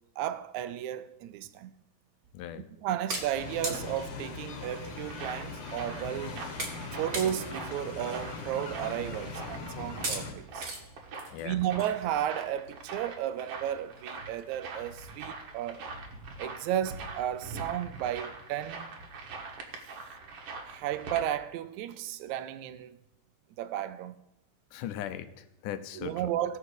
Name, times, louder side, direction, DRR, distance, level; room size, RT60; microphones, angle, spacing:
voice 1, 0.2-1.7 2.8-6.4 6.9-10.7 11.4-15.9 16.4-18.9 20.7-23.0 23.6-24.2 25.9-26.6, right 11 dB, 80° right, 1.8 m, -33 dB
sound 1, 2.2-2.4 3.1-4.2 5.1-5.2 5.5-5.6 6.0-6.2 6.6-6.9 7.1-7.6 8.1-8.2 9.1-9.3 10.0-10.2 10.6-10.8 11.1-12.7 13.2-13.3 13.6-13.7 14.0-14.1 14.4-14.7, right 2 dB, 35° right, 1.1 m, -37 dB
voice 2, 2.3-2.7 11.3-11.6 24.7-26.3, left 11 dB, 80° left, 2.2 m, -39 dB
sound 2, 3.3-10.3, left 4 dB, 60° left, 2.1 m, -41 dB
sound 3, 4.2-21.3, right 3 dB, 55° right, 1.9 m, -44 dB
17.5 x 6.6 x 4.8 m
omnidirectional pair, 3.8 m